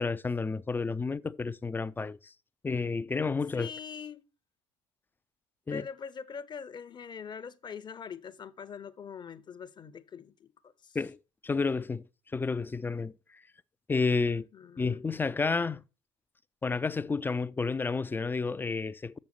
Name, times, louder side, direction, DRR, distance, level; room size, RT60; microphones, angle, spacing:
voice 1, 0.0-2.3 2.6-3.7 5.7-5.9 10.9-11.2 11.4-12.0 12.3-13.1 13.9-14.5 14.8-15.8 16.6-19.2, left 4 dB, 15° left, 0.4 m, -30 dB
voice 2, 3.5-4.2 5.7-11.0 14.1-15.0, left 6 dB, 30° left, 0.7 m, -43 dB
6.9 x 6.4 x 5.9 m
figure-of-eight pair, 65°, 15 cm